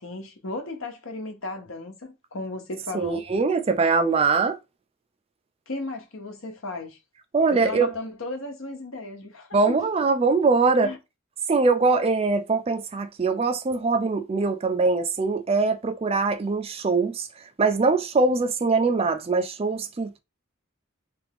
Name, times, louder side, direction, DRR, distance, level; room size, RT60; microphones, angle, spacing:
voice 1, 0.0-3.2 5.7-7.0 7.5-9.8 10.8-11.0, left 2 dB, 80° left, 1.0 m, -35 dB
voice 2, 2.9-4.6 7.3-7.9 9.5-10.9 11.5-17.3 17.6-20.2, right 4 dB, 30° right, 0.4 m, -22 dB
3.4 x 3.4 x 3.4 m
head